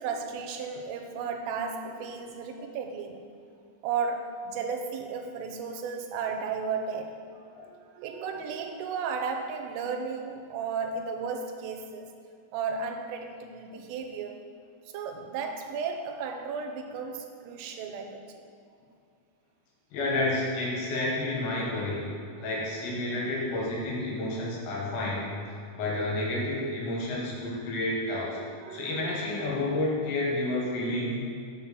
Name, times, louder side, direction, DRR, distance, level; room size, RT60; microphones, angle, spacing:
voice 1, 0.0-3.3 3.8-7.2 7.6-12.1 12.5-14.5 14.9-18.4 28.6-29.1, right 5 dB, 90° right, 4 dB, 3.3 m, -34 dB
voice 2, 19.9-22.1 22.4-25.4 25.8-28.4 28.7-31.3, left 2 dB, 70° left, -4 dB, 3.8 m, -30 dB
7.6 x 5.9 x 7.0 m, 2.4 s
omnidirectional pair, 5.8 m